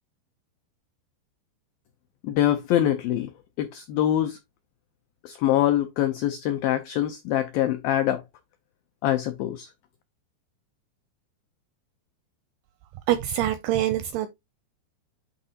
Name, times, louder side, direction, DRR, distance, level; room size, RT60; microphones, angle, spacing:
voice 1, 2.2-3.3 3.6-4.4 5.2-8.2 9.0-9.7, left 12 dB, 90° left, 2.0 m, -24 dB
voice 2, 13.1-14.3, right 12 dB, 85° right, 2.2 m, -25 dB
11.5 x 3.8 x 2.8 m
omnidirectional pair, 5.1 m